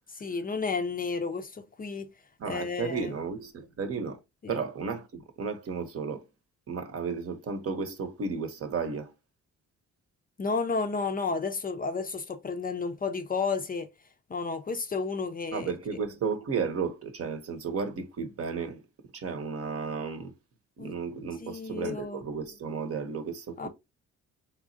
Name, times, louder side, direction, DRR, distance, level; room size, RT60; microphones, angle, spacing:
voice 1, 0.1-2.1 2.5-3.1 4.4-4.6 10.4-13.9 14.3-15.7 20.8-21.0 21.4-22.2 23.6-23.7, left 4 dB, 30° left, 0.5 m, -32 dB
voice 2, 2.4-4.2 4.5-6.2 6.7-9.1 15.5-18.8 19.1-20.3 20.8-23.7, right 5 dB, 50° right, 0.8 m, -33 dB
3.6 x 2.9 x 2.6 m
cardioid pair, 90°, 30 cm